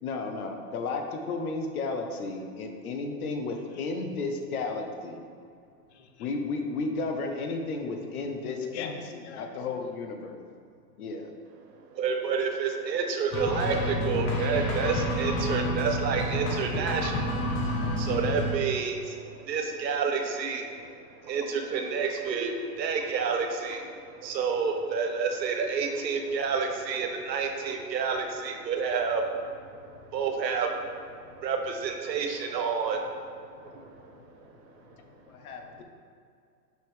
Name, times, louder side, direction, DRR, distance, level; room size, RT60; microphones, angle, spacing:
voice 1, 0.0-5.3 6.2-10.4 11.0-11.3 35.3-35.8, left 3 dB, 60° left, 4 dB, 1.0 m, -33 dB
voice 2, 5.9-6.3 8.7-9.5 30.0-30.2 33.6-34.5 34.8-35.2 35.5-35.8, left 6 dB, 45° left, 5 dB, 0.6 m, -45 dB
voice 3, 11.9-17.4 17.7-29.5 30.1-31.0 31.4-33.1 33.6-33.8, right 5 dB, 85° right, 4 dB, 1.0 m, -29 dB
sound 1, 13.3-18.5, left 1 dB, 20° left, 0.9 m, -29 dB
6.2 x 5.4 x 3.4 m, 2.3 s
hypercardioid pair, 155°, 49 cm